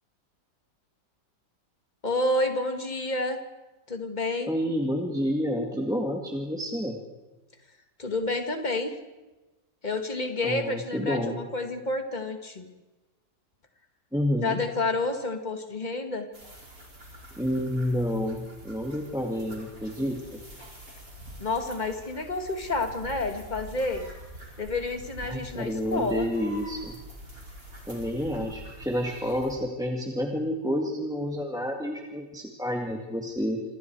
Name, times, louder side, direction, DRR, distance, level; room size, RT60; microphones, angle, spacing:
voice 1, 2.0-3.4 3.9-4.5 8.0-8.9 9.8-12.7 14.4-16.3 21.4-24.0 24.6-26.3, left 2 dB, 25° left, 6 dB, 2.1 m, -29 dB
voice 2, 4.5-7.0 10.4-11.4 14.1-14.6 17.4-20.4 25.2-27.0 27.9-33.6, equal, ahead, 1 dB, 2.0 m, -29 dB
sound 1, 16.3-29.6, equal, 55° right, 5.6 m, -45 dB
27.0 x 26.5 x 4.8 m, 1.1 s
omnidirectional pair, 1.8 m